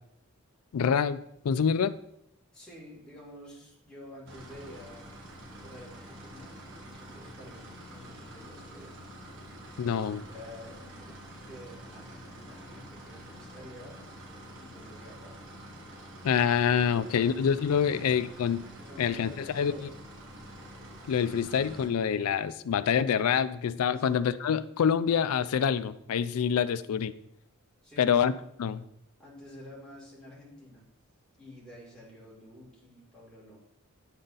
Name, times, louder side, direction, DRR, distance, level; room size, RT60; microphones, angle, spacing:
voice 1, 0.7-2.0 9.8-10.2 16.2-18.6 19.0-19.9 21.1-27.1 28.0-28.3 28.6-28.8, left 7 dB, 75° left, 15 dB, 0.4 m, -26 dB
voice 2, 2.5-5.2 5.6-9.0 10.3-14.0 14.6-15.4 17.9-18.1 18.7-19.9 23.9-24.1 27.8-28.1 29.2-30.9 31.3-33.6, left 1 dB, 5° left, -6 dB, 2.1 m, -49 dB
sound 1, 4.3-21.9, right 1 dB, 60° right, 1.4 m, -47 dB
9.7 x 3.8 x 4.0 m, 0.77 s
head